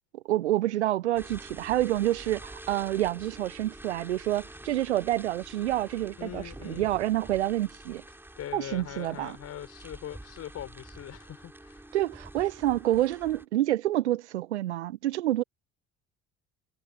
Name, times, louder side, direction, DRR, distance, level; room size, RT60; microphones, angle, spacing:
voice 1, 0.3-8.0 8.5-9.4 11.9-15.4, right 14 dB, 80° right, 0.5 m, -28 dB
sound 1, 1.1-13.5, right 1 dB, 5° right, 3.7 m, -47 dB
voice 2, 6.2-6.9 8.4-11.9, left 11 dB, 45° left, 5.9 m, -41 dB
figure-of-eight pair, 55°, 34 cm